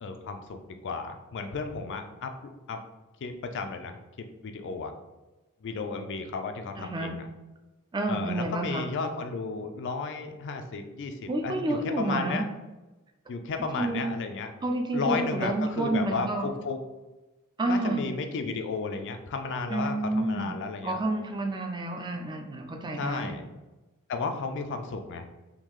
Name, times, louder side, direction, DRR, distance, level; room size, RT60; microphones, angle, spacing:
voice 1, 0.0-2.3 2.7-2.8 3.2-4.0 4.4-4.9 5.6-7.2 8.1-12.4 13.3-14.5 14.9-16.8 17.7-21.0 22.9-23.4 24.1-25.3, left 4 dB, 55° left, 6 dB, 0.4 m, -33 dB
voice 2, 6.8-7.2 7.9-8.9 11.3-12.5 13.8-14.1 14.6-16.5 17.6-18.0 19.7-20.5 20.8-23.4, right 2 dB, 20° right, 3 dB, 0.3 m, -29 dB
3.7 x 2.3 x 3.0 m, 1.1 s
head